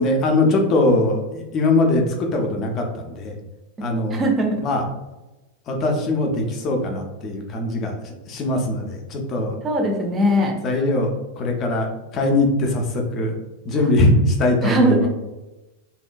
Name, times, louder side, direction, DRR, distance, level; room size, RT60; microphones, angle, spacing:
voice 1, 0.0-3.3 3.8-4.2 4.6-4.8 5.7-9.6 10.6-11.1 11.4-13.4 13.7-15.1, left 2 dB, 30° left, 2 dB, 0.5 m, -21 dB
voice 2, 4.1-4.6 9.6-10.5 13.8-13.9 14.6-15.0, equal, 20° right, 1 dB, 0.6 m, -20 dB
2.7 x 2.1 x 2.4 m, 1.0 s
figure-of-eight pair, 90°, 0 cm